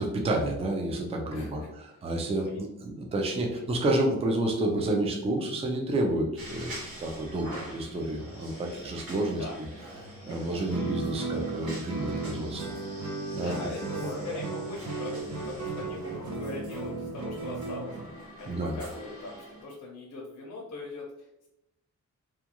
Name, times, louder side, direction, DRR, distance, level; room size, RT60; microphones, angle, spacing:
voice 1, 0.0-9.4 10.2-12.7 13.3-13.5 18.4-18.7, right 1 dB, 20° right, 1 dB, 0.4 m, -30 dB
sound 1, 6.4-19.6, right 1 dB, 50° right, 1.0 m, -44 dB
Guitar, 10.7-18.2, right 3 dB, 70° right, 0.6 m, -35 dB
voice 2, 13.3-18.0 18.4-21.5, left 2 dB, 70° left, -3 dB, 0.6 m, -41 dB
2.4 x 2.2 x 2.8 m, 0.85 s
wide cardioid pair, 135°, 30 cm